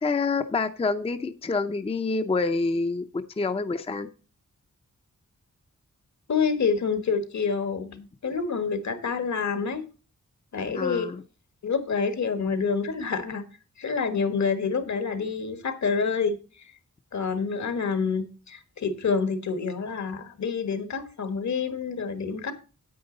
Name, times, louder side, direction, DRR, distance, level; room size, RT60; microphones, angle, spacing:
voice 1, 0.0-3.0 3.4-4.1 10.7-11.2, left 3 dB, 20° left, 9 dB, 0.5 m, -27 dB
voice 2, 6.3-9.8 10.5-11.1 11.6-13.4 13.8-16.4 17.1-22.5, left 5 dB, 70° left, 10 dB, 1.5 m, -27 dB
9.3 x 8.6 x 3.9 m, 0.34 s
wide cardioid pair, 135°, 30 cm